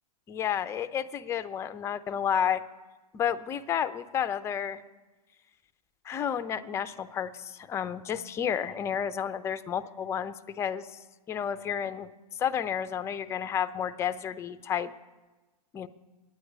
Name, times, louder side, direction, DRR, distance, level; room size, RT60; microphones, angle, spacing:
voice 1, 0.3-2.6 3.1-4.8 6.1-10.9 11.3-12.1 12.4-14.9 15.7-15.9, left 8 dB, 15° left, 11 dB, 0.3 m, -31 dB
9.3 x 9.2 x 8.0 m, 1.2 s
hypercardioid pair, 125°, 20 cm